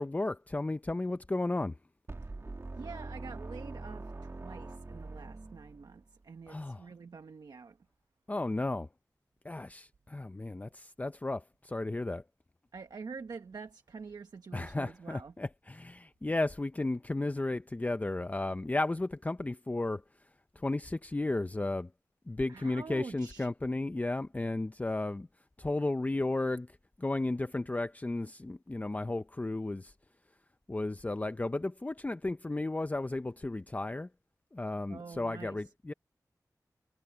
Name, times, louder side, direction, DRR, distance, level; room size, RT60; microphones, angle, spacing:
voice 1, 0.0-1.8 6.5-6.9 8.3-8.9 9.4-12.2 14.5-20.0 20.6-21.9 22.3-25.3 25.6-29.9 30.7-34.1 34.5-35.9, left 2 dB, 20° left, 0.5 m, -34 dB
sound 1, 2.1-6.1, right 2 dB, 40° right, 1.7 m, -43 dB
voice 2, 2.8-7.8 12.7-15.3 22.5-23.5 34.9-35.6, right 5 dB, 80° right, 1.2 m, -46 dB
wide cardioid pair, 80°, 7 cm